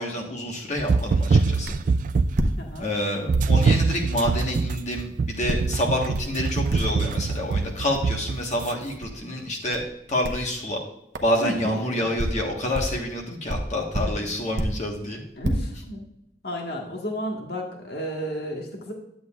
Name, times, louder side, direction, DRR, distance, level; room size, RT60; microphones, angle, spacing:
voice 1, 0.0-1.8 2.8-9.8 10.1-10.8 11.2-15.2, left 1 dB, 40° left, 0 dB, 1.4 m, -28 dB
sound 1, 0.8-2.6 3.3-8.7, right 4 dB, 45° right, 0.3 m, -23 dB
sound 2, 1.7-1.9 2.3-3.0 3.3-3.6 4.2-4.4 5.5-5.8 6.1-6.4 6.7-7.1 7.5-7.6 7.9-8.1 9.0-9.2 9.7-9.9 10.2-10.5 11.1-11.3 11.9-13.0 13.5-14.9 15.3-15.5, right 1 dB, 65° right, 0.8 m, -29 dB
voice 2, 2.6-2.9 11.4-12.1 13.9-14.3 15.4-16.0 16.4-18.9, equal, 60° left, 1 dB, 1.5 m, -32 dB
10.5 x 7.8 x 2.4 m, 0.80 s
head